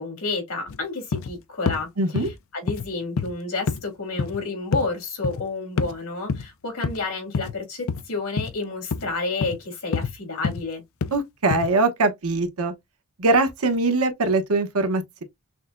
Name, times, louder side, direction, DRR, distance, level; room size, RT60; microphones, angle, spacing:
voice 1, 0.0-1.9 2.1-2.3 2.5-10.8, left 3 dB, 85° left, 2.7 m, -30 dB
sound 1, 0.7-0.8 1.1-1.3 1.7-1.8 2.2-2.3 2.7-2.9 3.2-3.3 3.7-3.8 4.2-4.4 4.7-4.9 5.2-5.4 5.8-5.9 6.3-6.5 6.8-7.0 7.3-7.6 7.9-8.0 8.4-8.5 8.9-9.1 9.4-9.6 9.9-10.1 10.4-10.6 11.0-11.2 11.5-11.7, left 5 dB, 65° left, 0.4 m, -26 dB
voice 2, 2.0-2.3 11.1-12.7 13.2-15.2, right 3 dB, 85° right, 0.9 m, -22 dB
6.2 x 2.2 x 2.5 m
head